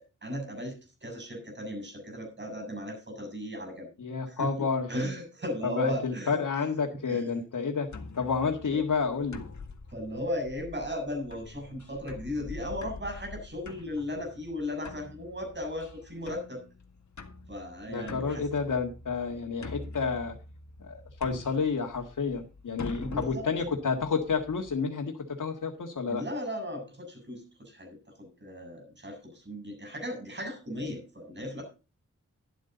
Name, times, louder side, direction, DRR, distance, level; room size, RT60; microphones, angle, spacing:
voice 1, 0.0-3.9 4.3-4.5 4.9-6.4 7.1-7.2 9.9-16.6 17.5-18.4 23.0-23.5 26.1-31.6, left 1 dB, 35° right, 4 dB, 7.6 m, -36 dB
voice 2, 4.0-4.9 5.6-7.9 8.1-9.4 17.9-20.4 20.8-26.2, left 5 dB, 90° left, 0 dB, 1.9 m, -30 dB
sound 1, 7.9-24.7, left 4 dB, 65° left, 1.9 m, -45 dB
12.0 x 11.5 x 4.0 m, 0.31 s
wide cardioid pair, 130°, 30 cm